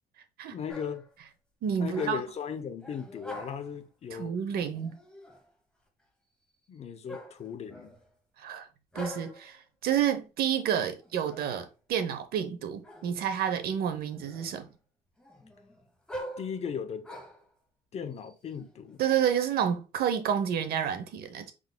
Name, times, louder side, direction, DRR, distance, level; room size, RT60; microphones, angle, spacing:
voice 1, 0.5-1.0 1.8-4.3 6.7-8.0 16.4-17.1 17.9-19.0, left 7 dB, 40° left, 0.7 m, -37 dB
sound 1, 0.7-1.1 1.8-2.4 2.8-3.8 4.7-5.5 7.1-8.1 8.9-9.5 11.0-11.7 12.8-13.4 13.9-14.7 15.2-17.5 18.2-19.3, equal, 5° left, 1.0 m, -45 dB
voice 2, 1.6-2.2 4.1-5.0 8.4-8.7 8.9-14.6 19.0-21.5, right 8 dB, 65° right, 0.8 m, -29 dB
4.8 x 3.8 x 2.2 m
cardioid pair, 110°, 17 cm